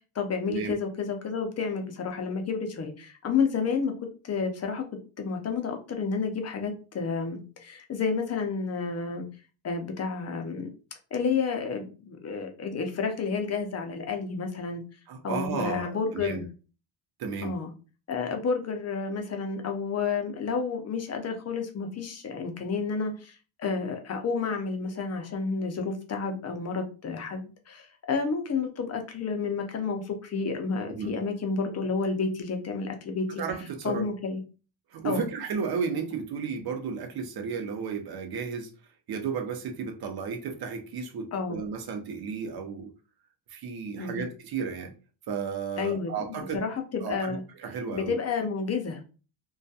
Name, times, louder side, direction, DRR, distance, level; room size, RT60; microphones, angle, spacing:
voice 1, 0.2-3.9 4.2-4.8 5.2-9.2 9.6-10.7 11.1-14.8 15.2-16.5 17.4-17.7 18.1-33.4 33.8-34.4 35.0-35.2 41.3-41.6 44.0-44.2 45.8-46.1 46.5-47.4 47.9-49.0, left 5 dB, 35° left, 4 dB, 0.5 m, -30 dB
voice 2, 15.1-16.4 17.2-17.6 30.9-31.2 33.4-34.1 34.9-38.7 39.1-42.9 43.5-44.9 45.3-46.6 47.0-47.4 47.6-48.2, right 6 dB, 50° right, 5 dB, 0.6 m, -33 dB
2.3 x 2.2 x 2.6 m, 0.35 s
cardioid pair, 115°, 50 cm